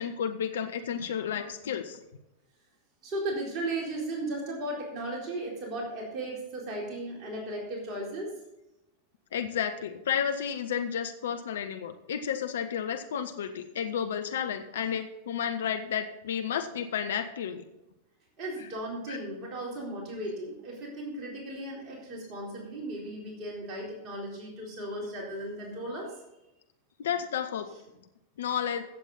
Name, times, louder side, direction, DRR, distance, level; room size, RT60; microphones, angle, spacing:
voice 1, 0.0-2.0 9.3-17.6 19.1-19.2 27.0-27.7 28.4-28.8, left 8 dB, 60° left, 8 dB, 0.9 m, -32 dB
voice 2, 3.0-8.3 18.4-26.1, right 1 dB, 35° right, -2 dB, 4.0 m, -36 dB
15.5 x 8.1 x 4.1 m, 0.93 s
figure-of-eight pair, 90°, 0 cm